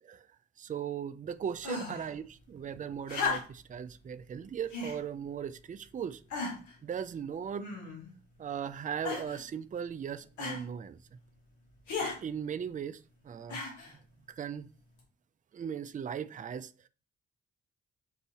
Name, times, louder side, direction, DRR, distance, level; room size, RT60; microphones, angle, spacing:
voice 1, 0.6-6.2 6.8-7.7 8.4-11.0 12.2-13.6 14.3-14.7 15.5-16.9, right 8 dB, 30° right, 0.4 m, -38 dB
sound 1, 1.6-2.1 3.1-3.7 4.7-5.0 5.7-5.8 6.3-6.7 7.6-8.1 9.0-9.4 10.4-10.6 11.9-12.2 13.5-13.9 15.0-15.1, left 4 dB, 90° left, 1.4 m, -35 dB
4.7 x 2.7 x 4.1 m
supercardioid pair, 50°, 29 cm